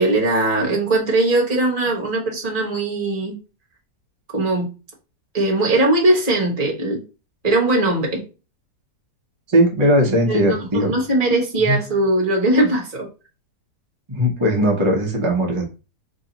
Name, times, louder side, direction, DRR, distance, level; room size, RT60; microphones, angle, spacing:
voice 1, 0.0-3.4 4.3-4.7 5.3-7.0 7.4-8.2 10.3-13.1, right 2 dB, 35° right, -1 dB, 1.1 m, -20 dB
voice 2, 9.5-10.9 11.7-11.8 14.1-15.6, equal, 50° right, 0 dB, 0.3 m, -18 dB
3.0 x 2.8 x 3.8 m, 0.32 s
omnidirectional pair, 1.8 m